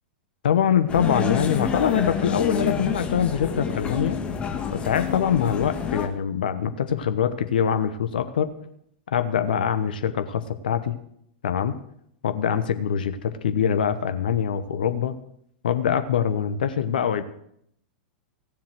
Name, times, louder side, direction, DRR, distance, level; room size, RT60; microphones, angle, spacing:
voice 1, 0.4-4.2 4.7-8.5 9.1-11.0 11.4-11.7 12.2-15.1 15.6-17.2, left 8 dB, 65° left, 10 dB, 1.1 m, -24 dB
sound 1, 0.9-6.1, left 6 dB, 20° left, 1.7 m, -28 dB
15.5 x 7.4 x 7.7 m, 0.72 s
figure-of-eight pair, 95°, 5 cm